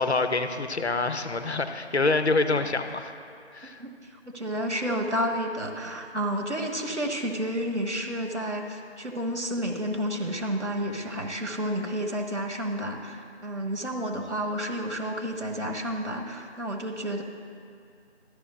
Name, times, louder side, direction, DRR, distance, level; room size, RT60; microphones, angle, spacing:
voice 1, 0.0-3.1 3.5-3.8, left 3 dB, 70° left, 8 dB, 0.7 m, -26 dB
voice 2, 3.6-17.2, equal, 80° right, 2 dB, 1.5 m, -31 dB
13.5 x 11.5 x 2.6 m, 2.4 s
figure-of-eight pair, 170°, 34 cm